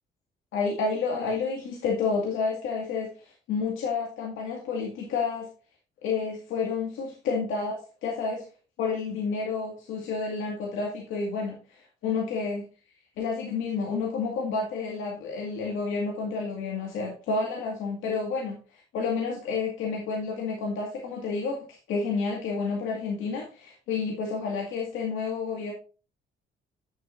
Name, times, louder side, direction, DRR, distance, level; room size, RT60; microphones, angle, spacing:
voice 1, 0.5-5.5 6.0-8.4 8.8-12.6 13.2-25.7, left 4 dB, 90° left, -1 dB, 2.0 m, -30 dB
9.2 x 7.6 x 2.6 m, 0.34 s
cardioid pair, 90°, 20 cm